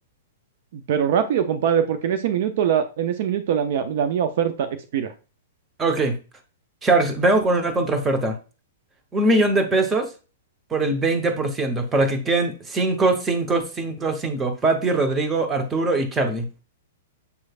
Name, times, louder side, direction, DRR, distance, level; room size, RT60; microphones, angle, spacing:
voice 1, 0.7-4.7 4.9-5.1, right 8 dB, 60° right, 9 dB, 0.4 m, -22 dB
voice 2, 5.8-6.2 6.8-8.4 9.1-10.1 10.7-16.6, right 2 dB, 15° right, 7 dB, 0.8 m, -22 dB
6.7 x 3.1 x 2.4 m, 0.33 s
hypercardioid pair, 120°, 0 cm